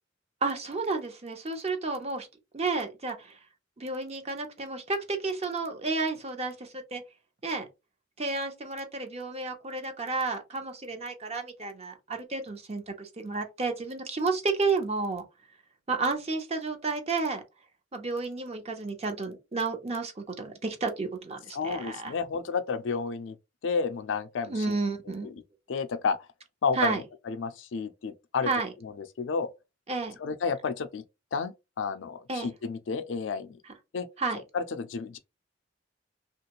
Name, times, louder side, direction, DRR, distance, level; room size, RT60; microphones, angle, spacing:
voice 1, 0.4-2.3 2.5-3.4 3.8-7.0 7.4-7.7 8.2-15.2 15.9-17.4 17.9-22.1 24.5-25.3 26.8-27.0 28.5-28.7 29.9-30.2 32.3-32.5 34.2-34.4, right 3 dB, 35° right, 0.7 m, -31 dB
voice 2, 21.5-23.4 23.6-24.8 25.2-25.4 25.7-26.3 26.6-28.5 28.8-29.5 30.2-31.0 31.3-33.6 33.9-34.1 34.5-35.2, left 5 dB, 70° left, 0.4 m, -31 dB
3.0 x 2.3 x 2.9 m
head